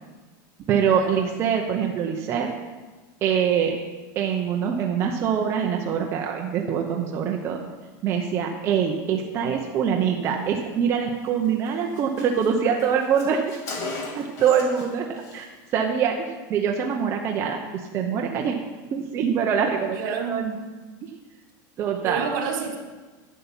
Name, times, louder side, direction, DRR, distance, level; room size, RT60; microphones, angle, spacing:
voice 1, 0.7-2.5 3.2-3.8 4.2-7.6 8.0-13.6 14.1-15.5 15.7-18.6 18.9-20.6 21.0-21.1 21.8-22.3, right 7 dB, 25° right, 1 dB, 0.7 m, -24 dB
Car, 11.2-11.4 11.7-11.8 12.0-14.9 15.2-15.4, left 3 dB, 35° left, 1.9 m, -37 dB
voice 2, 20.0-20.4 22.0-22.8, right 6 dB, 65° right, 3 dB, 2.2 m, -29 dB
11.0 x 5.7 x 8.8 m, 1.3 s
supercardioid pair, 175°, 11 cm